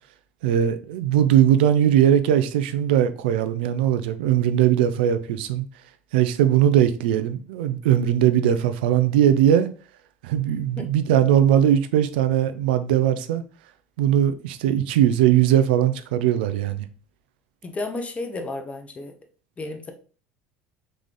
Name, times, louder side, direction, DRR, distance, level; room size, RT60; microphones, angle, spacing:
voice 1, 0.4-5.7 6.1-9.7 10.2-13.4 14.0-16.9, right 10 dB, 85° right, 0.5 m, -20 dB
voice 2, 17.6-19.1 19.6-19.9, left 2 dB, 25° left, 0.9 m, -32 dB
3.9 x 3.3 x 3.7 m
supercardioid pair, 90°, 5 cm